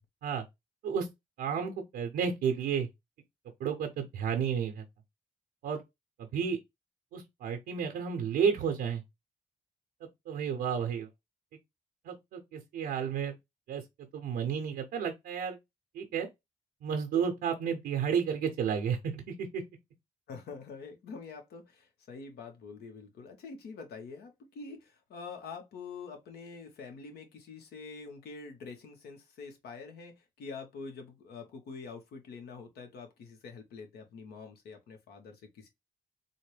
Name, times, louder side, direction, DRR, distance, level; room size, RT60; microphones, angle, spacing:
voice 1, 1.4-2.9 3.6-4.8 5.6-5.8 6.2-6.6 7.1-9.0 10.0-11.1 12.0-13.3 13.7-13.8 14.1-15.6 15.9-16.3 16.8-19.6, right 7 dB, 90° right, 0.7 m, -32 dB
voice 2, 20.3-35.7, left 4 dB, 80° left, 1.0 m, -46 dB
4.1 x 2.1 x 3.2 m
supercardioid pair, 50°, 16 cm